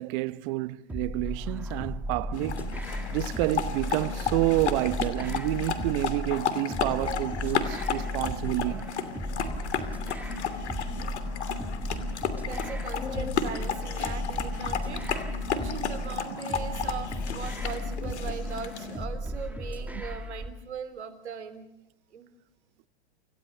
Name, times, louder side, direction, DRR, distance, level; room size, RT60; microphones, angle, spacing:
voice 1, 0.0-8.9 20.0-20.1, right 19 dB, 50° right, 1.0 m, -29 dB
sound 1, 0.9-20.5, equal, 5° right, 2.2 m, -35 dB
sound 2, 2.3-19.1, left 7 dB, 85° left, 2.8 m, -33 dB
voice 2, 12.3-15.0 15.5-21.7 22.1-22.4, right 7 dB, 85° right, 3.1 m, -40 dB
27.5 x 16.5 x 6.8 m
hypercardioid pair, 110°, 33 cm